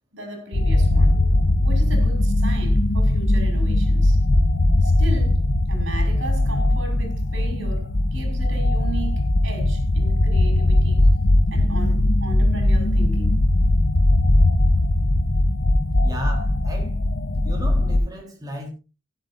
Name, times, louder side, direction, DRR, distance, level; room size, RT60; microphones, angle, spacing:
voice 1, 0.1-1.2 1.6-4.2 4.8-5.4 5.7-11.1 11.5-13.4, right 2 dB, 80° right, 5.5 m, -36 dB
sound 1, 0.5-18.0, left 1 dB, 75° left, 1.0 m, -19 dB
voice 2, 16.0-17.0 17.4-18.7, equal, 20° right, 4.2 m, -35 dB
16.0 x 12.0 x 2.7 m
head